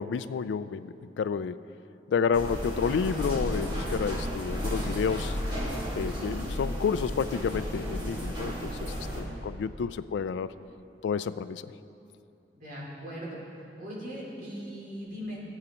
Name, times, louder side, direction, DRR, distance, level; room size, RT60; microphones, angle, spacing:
voice 1, 0.0-1.6 2.1-5.4 5.9-10.5 11.0-11.6, left 6 dB, 90° left, 15 dB, 0.3 m, -30 dB
sound 1, 2.3-9.2, equal, 30° right, 1.9 m, -33 dB
voice 2, 12.5-13.4 13.8-15.4, equal, 55° right, -5 dB, 2.7 m, -39 dB
17.0 x 8.0 x 3.0 m, 2.7 s
head